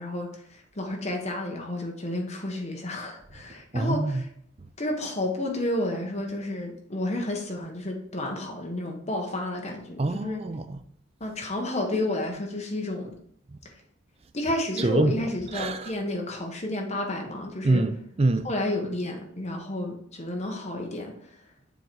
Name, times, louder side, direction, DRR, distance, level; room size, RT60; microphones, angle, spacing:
voice 1, 0.0-4.3 4.8-10.4 11.2-13.1 13.6-13.7 14.3-17.8 18.4-21.1, left 1 dB, 35° left, 1.2 m, -31 dB
voice 2, 3.7-4.2 10.0-10.8 14.8-15.2 15.5-15.9 17.6-18.5, right 2 dB, 30° right, 0.4 m, -25 dB
7.0 x 3.9 x 4.6 m
head